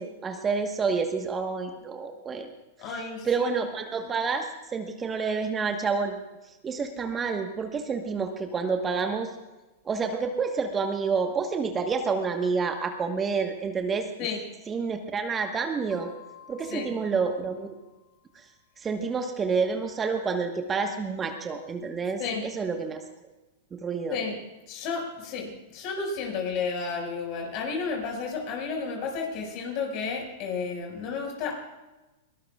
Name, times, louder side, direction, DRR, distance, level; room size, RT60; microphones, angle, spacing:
voice 1, 0.0-2.5 3.2-6.2 6.6-9.3 9.8-14.1 14.7-16.1 16.5-17.7 18.3-18.4 18.8-23.0 23.8-24.2, right 5 dB, 20° right, 5 dB, 1.3 m, -28 dB
voice 2, 2.8-3.4 14.2-14.4 16.7-16.9 22.2-22.4 24.1-24.4 24.7-31.6, left 5 dB, 45° left, 1 dB, 5.6 m, -32 dB
sound 1, 15.9-18.4, left 7 dB, 20° left, 6.9 m, -53 dB
22.5 x 19.0 x 2.4 m, 1.1 s
hypercardioid pair, 105°, 0 cm